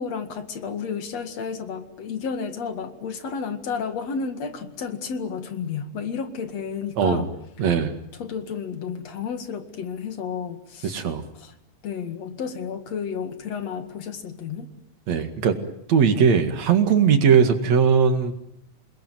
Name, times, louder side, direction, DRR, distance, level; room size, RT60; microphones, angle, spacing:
voice 1, 0.0-7.3 7.6-7.7 8.1-11.0 11.4-11.5 11.8-14.7, left 6 dB, 65° left, 9 dB, 3.1 m, -32 dB
voice 2, 7.0-7.3 7.6-7.9 10.8-11.2 15.1-15.5 15.9-18.3, right 6 dB, 70° right, 8 dB, 3.2 m, -19 dB
28.5 x 20.5 x 9.4 m, 0.79 s
omnidirectional pair, 3.3 m